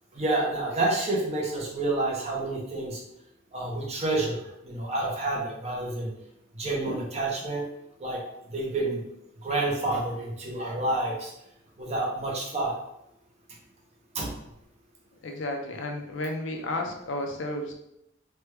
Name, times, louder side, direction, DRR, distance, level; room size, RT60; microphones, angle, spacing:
voice 1, 0.1-3.0 3.5-6.1 6.5-7.6 8.0-8.2 8.5-9.0 9.4-11.3 11.8-12.7 14.1-14.3, right 2 dB, 35° right, -2 dB, 0.6 m, -29 dB
voice 2, 15.2-17.7, left 1 dB, 75° left, 3 dB, 0.5 m, -32 dB
3.3 x 2.2 x 3.1 m, 0.81 s
head